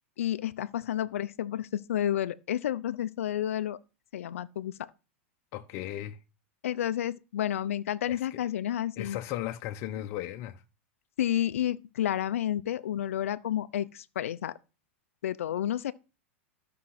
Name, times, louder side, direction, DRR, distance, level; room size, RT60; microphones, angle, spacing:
voice 1, 0.2-3.8 4.1-4.9 6.6-9.2 11.2-14.6 15.2-15.9, left 11 dB, 85° left, 0.7 m, -30 dB
voice 2, 5.5-6.2 8.1-8.2 9.0-10.6, left 13 dB, 50° left, 1.0 m, -36 dB
12.5 x 6.0 x 6.0 m
hypercardioid pair, 125°, 7 cm